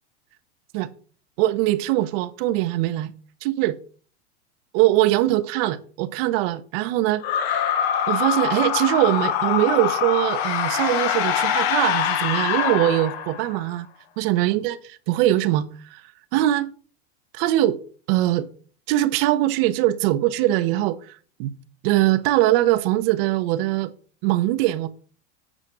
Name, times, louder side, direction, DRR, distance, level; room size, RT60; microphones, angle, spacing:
voice 1, 1.4-3.1 3.4-3.8 4.7-7.2 8.1-13.9 14.2-15.6 15.9-16.0 16.3-16.7 17.3-17.8 18.1-18.5 18.9-21.5 21.8-23.9 24.2-24.9, right 15 dB, 55° right, 0.9 m, -22 dB
sound 1, 7.2-13.6, left 9 dB, 60° left, 1.1 m, -24 dB
9.1 x 4.4 x 5.9 m
hypercardioid pair, 115°, 35 cm